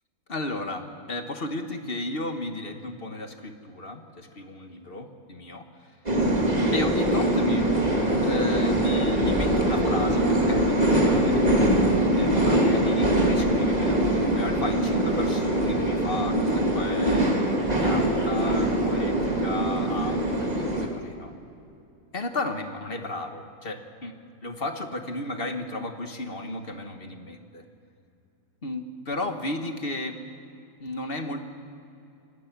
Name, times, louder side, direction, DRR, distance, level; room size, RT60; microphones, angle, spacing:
voice 1, 0.3-5.9 6.7-7.7 8.2-11.6 12.2-17.3 17.7-21.3 22.1-24.2 24.4-27.6 28.6-30.2 30.8-31.4, left 2 dB, 35° left, 6 dB, 1.4 m, -34 dB
sound 1, 6.1-20.9, right 1 dB, 20° right, 2.2 m, -23 dB
25.5 x 18.0 x 6.0 m, 2.6 s
omnidirectional pair, 2.0 m